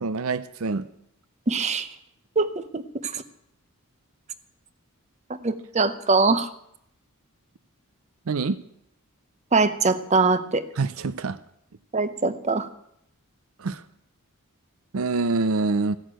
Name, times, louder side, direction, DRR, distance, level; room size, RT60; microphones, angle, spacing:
voice 1, 0.0-0.9 8.3-8.6 10.8-11.4 13.6-13.8 14.9-16.0, right 3 dB, 70° right, 0.6 m, -25 dB
voice 2, 1.5-1.9 2.4-3.2 5.3-6.5 9.5-10.6 11.9-12.7, right 3 dB, 30° right, 0.8 m, -23 dB
15.0 x 6.5 x 8.9 m
head